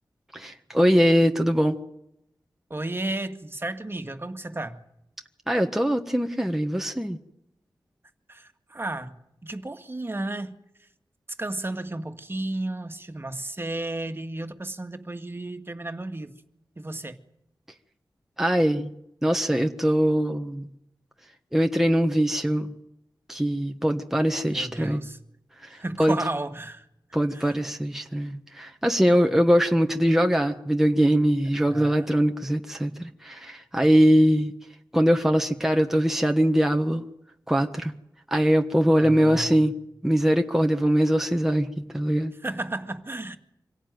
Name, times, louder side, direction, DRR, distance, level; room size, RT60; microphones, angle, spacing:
voice 1, 0.3-1.8 5.5-7.2 18.4-18.9 19.2-20.7 21.5-22.7 23.3-25.0 25.6-26.2 27.1-34.5 34.9-37.0 37.5-37.9 38.3-39.7 40.0-42.3, equal, 5° right, 1.5 m, -22 dB
voice 2, 2.7-4.8 8.3-10.9 11.4-16.4 16.8-17.2 24.5-25.2 25.7-26.9 27.3-27.6 31.7-32.1 39.0-39.7 42.4-43.4, right 2 dB, 30° right, 2.0 m, -33 dB
25.5 x 17.5 x 9.4 m
cardioid pair, 60°, 8 cm